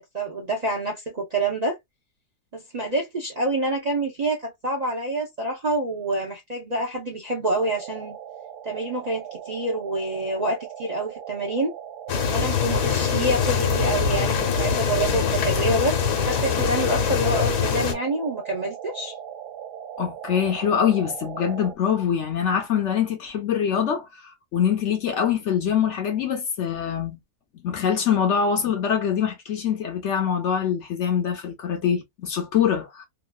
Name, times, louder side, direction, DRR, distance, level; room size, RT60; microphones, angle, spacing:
voice 1, 0.1-1.8 2.5-8.2 8.6-11.7 12.3-19.1, right 2 dB, 55° right, 0.4 m, -27 dB
sound 1, 7.6-21.8, right 9 dB, 80° right, 1.1 m, -39 dB
sound 2, 12.1-17.9, left 6 dB, 85° left, 1.4 m, -23 dB
voice 2, 20.0-27.2 27.6-33.1, left 8 dB, 60° left, 0.8 m, -24 dB
3.0 x 2.4 x 2.2 m
omnidirectional pair, 1.7 m